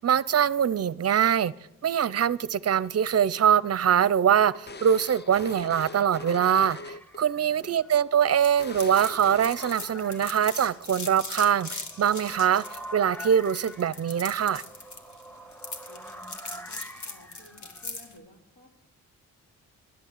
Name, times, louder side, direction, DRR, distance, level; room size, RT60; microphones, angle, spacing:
voice 1, 0.0-1.5 1.8-12.6 12.9-14.6, right 8 dB, 45° right, 0.5 m, -23 dB
sound 1, 3.6-7.2 7.4-7.7 8.1-8.2 8.6-10.1, left 3 dB, 30° left, 0.7 m, -42 dB
sound 2, 4.7-17.9, equal, 5° left, 1.1 m, -47 dB
voice 2, 7.3-7.7 15.9-18.7, equal, 85° left, 3.5 m, -54 dB
sound 3, 8.4-18.1, left 3 dB, 55° left, 2.1 m, -40 dB
10.5 x 10.5 x 8.3 m
cardioid pair, 65°, 34 cm